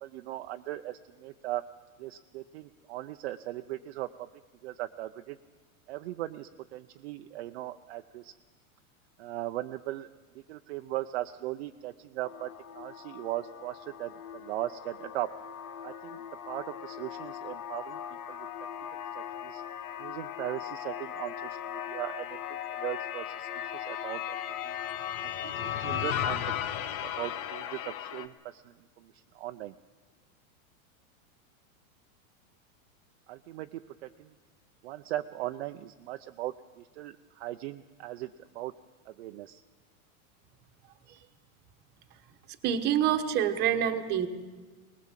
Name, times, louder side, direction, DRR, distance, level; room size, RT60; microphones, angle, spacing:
voice 1, 0.0-1.6 2.0-4.1 4.6-5.4 5.9-8.3 9.2-10.1 10.5-12.5 12.8-15.3 15.8-16.2 16.5-18.0 18.3-18.4 19.1-19.6 20.0-21.6 21.9-22.3 22.7-24.4 24.6-24.8 25.2-26.4 26.8-28.6 29.0-29.1 29.3-29.7 33.3-34.3 34.8-38.3 38.5-38.7 39.2-39.6, right 15 dB, 50° right, 7 dB, 0.6 m, -38 dB
sound 1, 12.2-28.3, left 10 dB, 85° left, 1.4 m, -37 dB
voice 2, 42.6-44.3, right 9 dB, 25° right, 7 dB, 1.2 m, -26 dB
21.0 x 20.5 x 7.4 m, 1.4 s
supercardioid pair, 170°, 42 cm